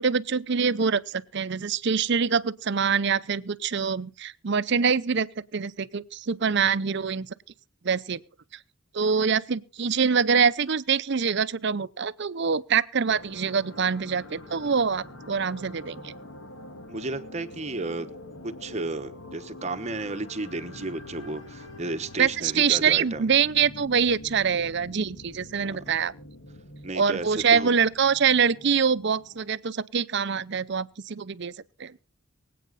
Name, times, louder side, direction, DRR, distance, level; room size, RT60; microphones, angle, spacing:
voice 1, 0.0-5.3 5.5-7.3 7.8-8.2 8.9-16.1 22.2-26.1 26.9-31.5 31.8-31.9, right 6 dB, 55° right, 0.6 m, -24 dB
sound 1, 13.1-29.5, left 1 dB, 60° left, 1.8 m, -45 dB
voice 2, 16.9-18.1 18.4-23.2 25.6-25.8 26.8-27.7, right 2 dB, 30° right, 1.1 m, -33 dB
24.0 x 8.5 x 4.0 m
head